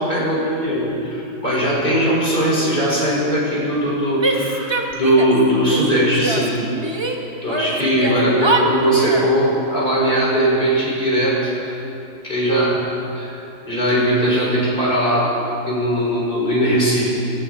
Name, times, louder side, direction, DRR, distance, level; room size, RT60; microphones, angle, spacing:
voice 1, 0.0-6.6 7.4-11.8 12.2-12.8 13.2-13.3 13.7-15.3 15.6-17.1, equal, 40° left, -6 dB, 4.1 m, -19 dB
Female speech woman speaking / Yell, 4.2-5.4 5.7-7.2 7.5-9.3, right 2 dB, 20° right, 0.9 m, -24 dB
16.0 x 14.5 x 3.8 m, 2.9 s
omnidirectional pair, 1.4 m